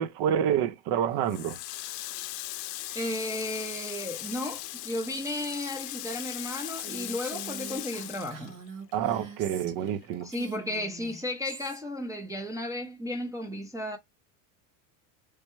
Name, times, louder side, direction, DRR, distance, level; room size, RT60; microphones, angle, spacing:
voice 1, 0.0-1.6 8.9-10.3, right 9 dB, 55° right, 0.7 m, -28 dB
Water tap faucet, 1.3-9.1 9.4-10.8, left 16 dB, 75° left, 0.6 m, -39 dB
voice 2, 2.9-8.5 10.2-14.0, left 1 dB, 5° right, 0.5 m, -34 dB
Female speech woman speaking, 6.8-10.0 10.3-11.8, right 6 dB, 85° right, 1.6 m, -44 dB
3.3 x 2.1 x 3.0 m
supercardioid pair, 100°, 49 cm